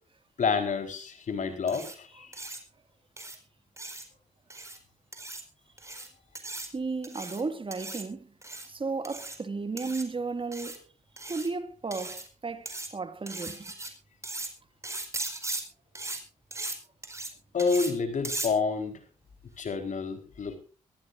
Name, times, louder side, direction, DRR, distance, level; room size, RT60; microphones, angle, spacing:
voice 1, 0.4-2.3 17.5-19.0 19.6-20.6, left 5 dB, 65° left, 4.3 m, -29 dB
sound 1, 1.7-1.9 2.3-2.6 3.2-3.4 3.8-4.0 4.5-4.8 5.1-5.4 5.8-6.1 6.3-6.7 7.0-7.4 7.7-8.0 8.4-8.7 9.0-9.4 9.8-10.0 10.5-10.8 11.2-11.5 11.9-12.3 12.7-12.9 13.3-13.9 14.2-14.5 14.8-15.6 15.9-16.2 16.5-16.8 17.0-17.3 17.6-17.9 18.2-18.5, right 2 dB, 20° right, 4.5 m, -37 dB
voice 2, 6.7-8.3 8.7-10.9 11.3-13.7, right 4 dB, 40° right, 2.2 m, -34 dB
22.0 x 15.5 x 2.6 m
cardioid pair, 60°, 14 cm